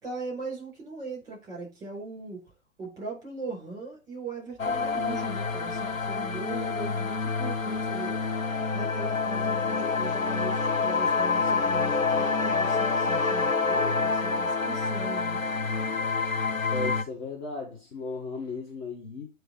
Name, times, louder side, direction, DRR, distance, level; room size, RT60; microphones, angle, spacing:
voice 1, 0.0-2.4 2.8-8.4 8.7-15.4, right 3 dB, 10° right, 4.8 m, -39 dB
sound 1, 4.6-17.0, left 4 dB, 90° left, 0.8 m, -27 dB
voice 2, 16.7-19.3, left 3 dB, 30° left, 1.5 m, -35 dB
8.8 x 3.2 x 4.5 m
figure-of-eight pair, 120°, 39 cm